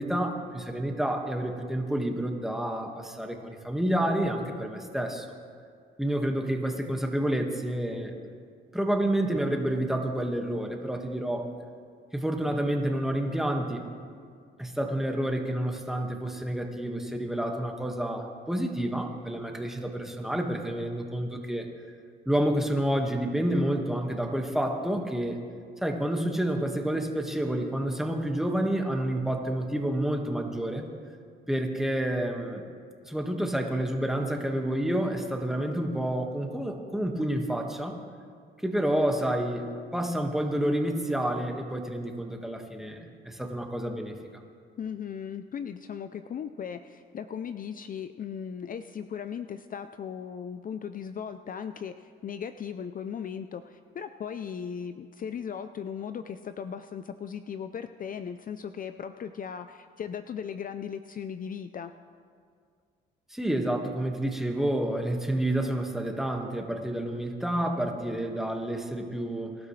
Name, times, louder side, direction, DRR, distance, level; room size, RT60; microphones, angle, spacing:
voice 1, 0.0-5.3 6.0-8.2 8.7-11.5 12.1-13.9 14.6-21.7 22.3-25.4 25.8-30.9 31.5-32.6 33.0-38.0 38.6-43.0 43.3-44.2 63.3-69.6, right 1 dB, ahead, 2 dB, 1.7 m, -29 dB
voice 2, 44.8-61.9, left 7 dB, 45° left, 9 dB, 0.5 m, -37 dB
24.0 x 12.0 x 3.3 m, 2.2 s
cardioid pair, 90°, 20 cm